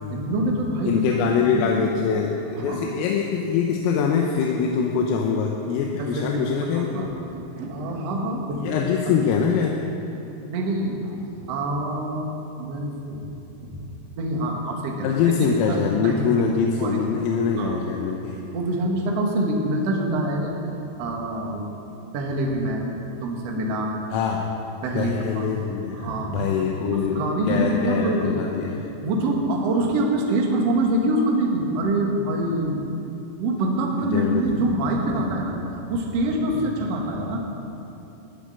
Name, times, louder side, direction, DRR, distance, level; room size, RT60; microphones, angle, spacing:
voice 1, 0.1-1.0 1.4-1.9 2.6-2.9 6.0-9.3 10.5-11.1 11.5-12.3 12.6-13.3 13.6-13.8 14.2-16.3 16.8-17.1 17.6-18.1 18.5-20.6 21.0-21.7 22.1-22.9 23.2-24.0 24.8-25.5 25.8-26.5 26.9-28.4 29.0-32.8 33.4-35.6 35.9-37.5, right 1 dB, 75° right, 0 dB, 1.4 m, -25 dB
voice 2, 0.9-7.1 8.5-9.8 15.0-18.4 24.1-24.4 24.9-28.9 34.1-34.4, left 6 dB, 90° left, 0 dB, 3.6 m, -24 dB
15.0 x 7.5 x 9.7 m, 3.0 s
omnidirectional pair, 5.8 m